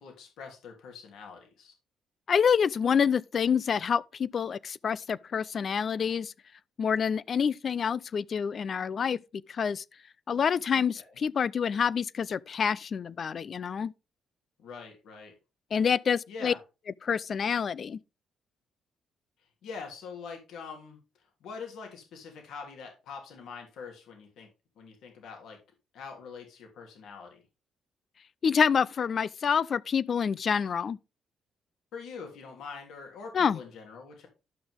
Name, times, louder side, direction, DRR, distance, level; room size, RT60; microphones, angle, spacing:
voice 1, 0.0-1.7 10.7-10.8 14.6-15.3 16.3-16.6 19.6-21.0 21.4-24.5 24.8-25.6 25.9-27.4 31.9-34.3, left 5 dB, 80° left, 3.1 m, -44 dB
voice 2, 2.3-6.3 6.8-9.2 9.5-9.8 10.3-13.9 15.7-16.5 17.0-18.0 28.4-31.0 33.3-33.6, left 7 dB, 50° left, 0.5 m, -27 dB
11.5 x 6.1 x 3.7 m
cardioid pair, 90°, 0 cm